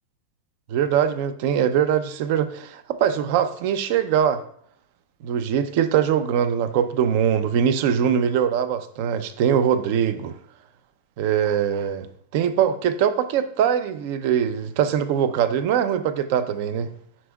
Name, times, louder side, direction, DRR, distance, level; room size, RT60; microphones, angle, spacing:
voice 1, 0.7-4.4 5.2-10.3 11.2-12.1 12.3-16.9, right 8 dB, 45° right, 12 dB, 0.5 m, -22 dB
9.8 x 5.2 x 2.3 m, 0.66 s
supercardioid pair, 160°, 0 cm